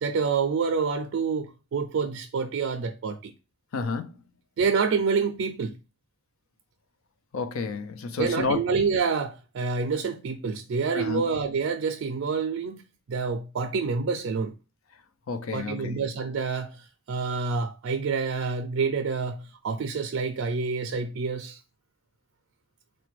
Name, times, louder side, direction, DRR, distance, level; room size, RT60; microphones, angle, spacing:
voice 1, 0.0-3.3 4.6-5.8 8.2-12.8 13.1-14.5 15.5-21.6, right 5 dB, 65° right, 0.3 m, -27 dB
voice 2, 3.7-4.2 7.3-8.6 10.9-11.3 15.3-16.0, left 4 dB, 80° left, 0.5 m, -30 dB
4.2 x 2.2 x 2.9 m
head